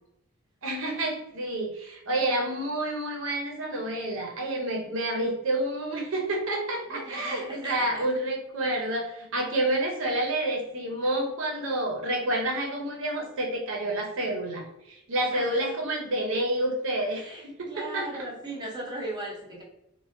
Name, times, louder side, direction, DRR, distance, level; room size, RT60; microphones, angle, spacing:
voice 1, 0.6-18.1, right 1 dB, 65° right, 0 dB, 0.6 m, -29 dB
voice 2, 6.9-8.1 11.0-11.1 15.3-15.8 17.1-19.6, right 1 dB, 20° right, -3 dB, 0.6 m, -38 dB
3.3 x 2.1 x 2.4 m, 0.85 s
head